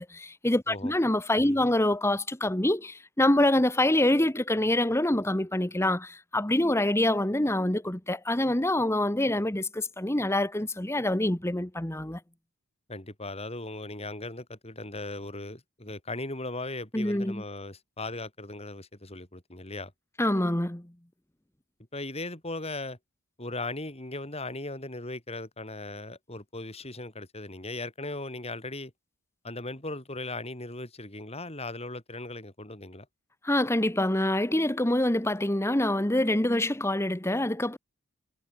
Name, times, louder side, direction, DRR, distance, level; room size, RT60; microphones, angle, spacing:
voice 1, 0.0-12.2 16.9-17.4 20.2-20.9 33.4-37.8, left 1 dB, 15° left, 1.3 m, -26 dB
voice 2, 12.9-19.9 21.9-23.0 23.4-28.9 29.4-33.1, left 2 dB, 30° left, 6.3 m, -38 dB
head